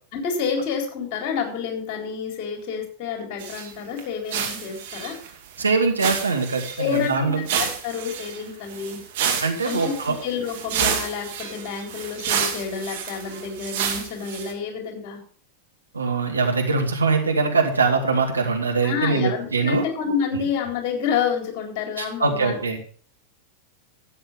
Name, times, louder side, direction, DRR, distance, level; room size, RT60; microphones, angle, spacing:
voice 1, 0.1-5.2 6.8-9.0 9.6-15.2 18.8-22.8, left 6 dB, 40° left, 3 dB, 4.0 m, -29 dB
sound 1, 3.4-3.7 4.0-4.1 4.3-5.6 6.0-7.1 7.4-14.5, right 7 dB, 50° right, 2.4 m, -29 dB
voice 2, 5.6-7.5 9.4-10.2 15.9-19.8 22.0-22.8, right 4 dB, 75° right, 3 dB, 2.3 m, -22 dB
12.5 x 8.8 x 5.1 m, 0.44 s
figure-of-eight pair, 90°, 0 cm